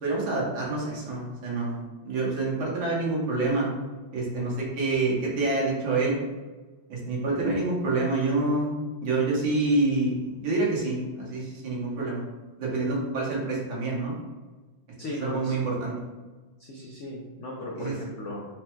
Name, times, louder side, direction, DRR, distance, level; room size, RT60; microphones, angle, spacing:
voice 1, 0.0-3.7 4.1-6.2 6.9-8.8 9.0-12.2 12.6-14.1 15.2-16.0 17.8-17.9, right 3 dB, 85° right, -4 dB, 2.1 m, -27 dB
voice 2, 15.0-15.6 16.7-18.5, left 1 dB, 80° left, -3 dB, 0.6 m, -36 dB
5.0 x 2.2 x 4.4 m, 1.3 s
omnidirectional pair, 2.1 m